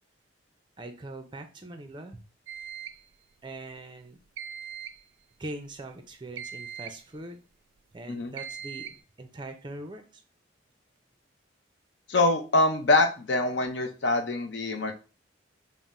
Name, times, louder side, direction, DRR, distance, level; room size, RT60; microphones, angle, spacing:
voice 1, 0.8-2.2 3.4-4.2 5.4-7.4 7.9-10.2, right 1 dB, 25° right, 7 dB, 0.5 m, -42 dB
sound 1, 2.5-3.1 4.4-5.0 6.4-7.1 8.4-9.0, right 8 dB, 80° right, 0.4 m, -40 dB
voice 2, 12.1-14.9, left 2 dB, 60° left, 5 dB, 0.6 m, -24 dB
3.7 x 2.1 x 4.1 m, 0.34 s
head